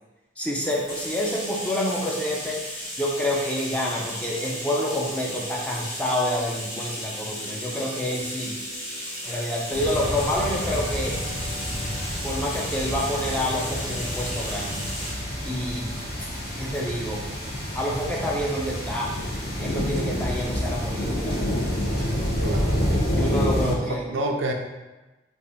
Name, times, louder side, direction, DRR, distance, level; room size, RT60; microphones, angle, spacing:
voice 1, 0.4-2.6 3.0-8.5 9.2-11.2 12.2-14.9 15.4-15.9 16.6-17.2 17.7-19.2 19.6-21.3 23.2-24.1, left 1 dB, 5° left, -3 dB, 0.4 m, -28 dB
Bathtub (filling or washing), 0.6-15.2, equal, 25° left, 1.4 m, -35 dB
sound 1, 4.3-16.3, left 1 dB, 80° left, 1.1 m, -47 dB
sound 2, 9.7-23.7, equal, 55° left, 1.2 m, -28 dB
voice 2, 22.4-23.0 23.6-24.5, right 1 dB, 90° right, 3 dB, 0.5 m, -29 dB
3.3 x 2.5 x 4.0 m, 1.1 s
head